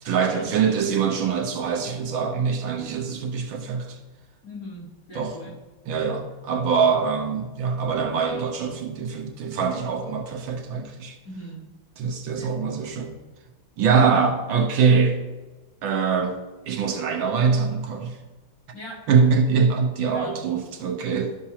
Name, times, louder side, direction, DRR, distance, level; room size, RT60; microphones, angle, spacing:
voice 1, 0.0-4.0 5.1-5.3 5.9-11.2 12.0-13.1 13.8-15.2 15.8-16.4 16.7-18.2 19.1-21.4, right 5 dB, 75° right, 1.7 m, -23 dB
voice 2, 4.4-5.6 11.2-11.7 12.3-12.8 18.7-19.0 20.1-20.4, equal, 60° left, 3.0 m, -39 dB
13.0 x 5.9 x 2.9 m
omnidirectional pair, 2.2 m